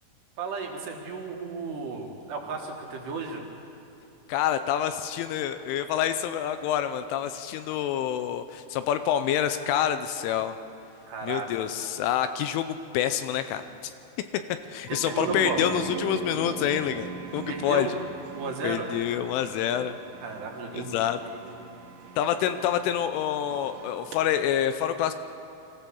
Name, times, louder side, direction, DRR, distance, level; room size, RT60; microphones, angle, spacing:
voice 1, 0.4-3.5 11.1-11.7 14.9-15.8 17.5-17.9 18.3-18.9 20.2-21.5, right 4 dB, 65° right, 0 dB, 3.2 m, -34 dB
voice 2, 4.3-10.5 11.2-13.6 14.7-17.9 18.6-20.0 20.7-21.2 22.2-25.1, left 10 dB, 80° left, 10 dB, 3.0 m, -27 dB
sound 1, 14.9-24.2, right 6 dB, 90° right, 4.2 m, -40 dB
24.5 x 15.5 x 7.0 m, 2.8 s
omnidirectional pair, 5.8 m